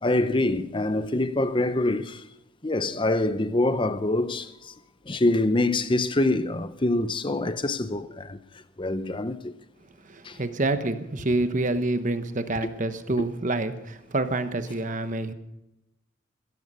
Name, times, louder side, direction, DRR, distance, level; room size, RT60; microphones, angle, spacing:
voice 1, 0.0-2.2 2.6-4.7 5.1-8.4 8.8-9.5 10.2-10.4, left 2 dB, 25° left, 0.7 m, -25 dB
voice 2, 10.1-15.3, right 2 dB, 35° right, 1.0 m, -27 dB
17.0 x 13.5 x 5.5 m
head